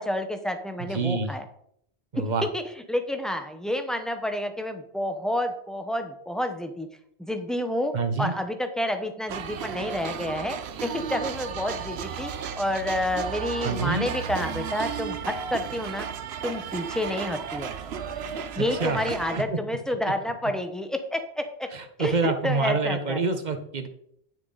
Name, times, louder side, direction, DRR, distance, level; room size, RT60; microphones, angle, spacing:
voice 1, 0.0-1.4 2.2-2.3 2.5-2.6 2.9-6.9 7.2-7.9 8.2-12.3 12.6-16.1 16.4-17.7 18.6-21.7 22.0-23.2, left 1 dB, ahead, 6 dB, 0.8 m, -29 dB
voice 2, 0.8-1.3 2.1-2.4 7.9-8.4 13.6-14.1 18.6-19.6 21.7-23.9, right 4 dB, 45° right, 8 dB, 1.1 m, -27 dB
sound 1, 9.3-19.4, right 7 dB, 75° right, 1.0 m, -34 dB
10.5 x 6.6 x 4.0 m, 0.70 s
omnidirectional pair, 1.1 m